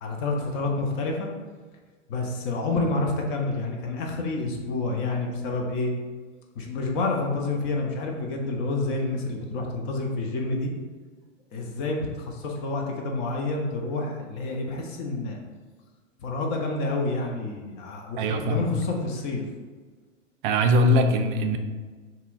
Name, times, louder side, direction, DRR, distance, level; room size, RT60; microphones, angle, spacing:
voice 1, 0.0-1.3 2.1-5.9 6.6-10.7 11.5-15.4 16.2-19.4, left 2 dB, 30° left, 1 dB, 0.5 m, -28 dB
voice 2, 18.2-18.7 20.4-21.6, equal, 40° right, 6 dB, 0.4 m, -21 dB
2.7 x 2.4 x 3.8 m, 1.4 s
hypercardioid pair, 105°, 39 cm